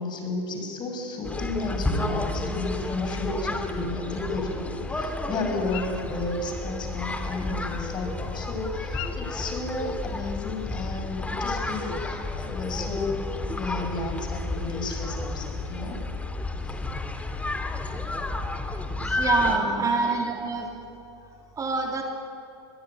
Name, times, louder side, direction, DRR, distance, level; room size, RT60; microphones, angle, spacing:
voice 1, 0.0-13.3 13.6-16.0 16.6-16.8 18.1-18.3 19.4-19.8, left 3 dB, 30° left, 4 dB, 6.5 m, -33 dB
sound 1, 1.2-19.6, left 2 dB, 10° left, 2.4 m, -31 dB
sound 2, 5.4-10.9, left 12 dB, 60° left, 3.2 m, -43 dB
voice 2, 18.7-20.7 21.3-22.0, right 4 dB, 25° right, 2 dB, 3.1 m, -27 dB
22.5 x 21.5 x 9.5 m, 2.7 s
hypercardioid pair, 105°, 14 cm